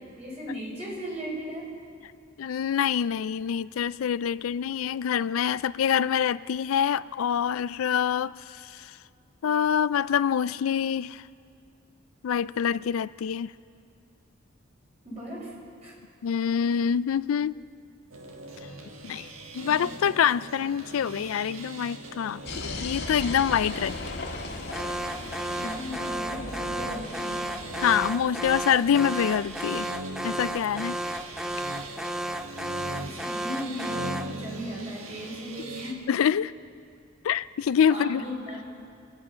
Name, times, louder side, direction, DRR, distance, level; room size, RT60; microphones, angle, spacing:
voice 1, 0.0-1.7 15.0-15.5 15.8-15.9 19.6-19.9 25.5-27.5 33.0-36.0 37.9-38.6, equal, 35° right, -5 dB, 5.4 m, -37 dB
voice 2, 2.4-9.0 9.4-11.2 12.2-13.5 16.2-17.6 19.0-19.3 19.5-23.9 27.8-29.9 30.2-31.0 36.1-36.5 37.2-38.2, left 8 dB, 85° left, 18 dB, 0.4 m, -26 dB
sound 1, 18.1-35.9, right 2 dB, 80° right, 1.6 m, -41 dB
sound 2, 22.4-33.1, left 2 dB, 60° left, 1.7 m, -39 dB
Alarm, 24.7-34.4, right 1 dB, 5° right, 0.3 m, -33 dB
25.5 x 9.8 x 5.7 m, 2.4 s
head